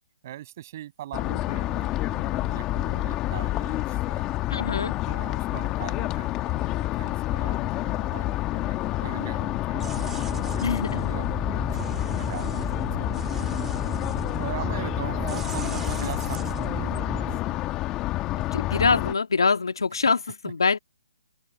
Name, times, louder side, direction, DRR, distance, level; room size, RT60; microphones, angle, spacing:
voice 1, 0.2-4.3 5.0-11.3 11.7-13.7 14.4-17.6, right 13 dB, 40° right, 6.6 m, -40 dB
sound 1, 1.1-19.1, left 16 dB, 20° left, 1.3 m, -28 dB
voice 2, 1.3-1.6 4.5-4.9 10.6-11.1 18.5-20.8, left 4 dB, 90° left, 1.9 m, -25 dB
sound 2, 9.7-17.4, right 7 dB, 10° right, 1.7 m, -36 dB
open air
hypercardioid pair, 155°, 2 cm